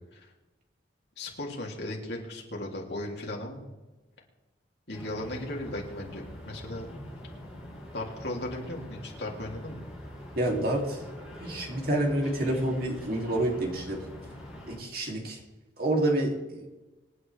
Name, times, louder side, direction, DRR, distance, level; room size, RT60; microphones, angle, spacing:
voice 1, 1.2-3.6 4.9-6.9 7.9-9.8, left 1 dB, 60° left, -1 dB, 3.3 m, -36 dB
sound 1, 4.9-14.8, equal, ahead, 6.2 m, -44 dB
voice 2, 10.4-11.0 11.4-14.0 14.7-15.4 15.8-16.7, right 1 dB, 50° right, 0 dB, 3.2 m, -28 dB
26.0 x 9.8 x 3.6 m, 1.1 s
head